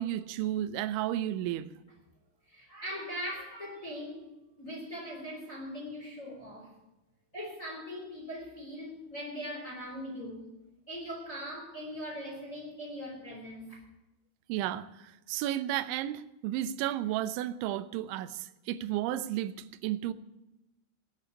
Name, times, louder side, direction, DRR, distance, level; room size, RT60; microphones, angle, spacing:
voice 1, 0.0-1.7 14.5-20.1, right 12 dB, 80° right, 13 dB, 2.9 m, -33 dB
voice 2, 2.5-4.3 4.6-6.7 7.3-10.5 10.9-13.8, equal, 20° left, -3 dB, 3.6 m, -40 dB
19.0 x 6.6 x 8.1 m, 0.96 s
omnidirectional pair, 5.7 m